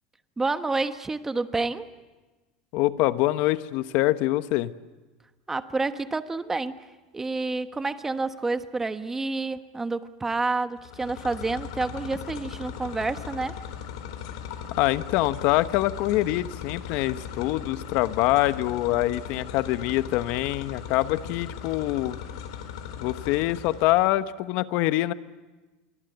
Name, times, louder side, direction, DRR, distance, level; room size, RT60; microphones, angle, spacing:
voice 1, 0.4-1.9 5.5-6.8 7.1-13.6, right 3 dB, 10° right, 10 dB, 1.2 m, -29 dB
voice 2, 2.7-4.7 14.8-22.2 23.0-25.1, left 16 dB, 60° left, 13 dB, 1.1 m, -25 dB
sound 1, 10.8-24.2, left 8 dB, 80° left, 3.8 m, -38 dB
28.0 x 23.5 x 8.1 m, 1.2 s
supercardioid pair, 135°, 3 cm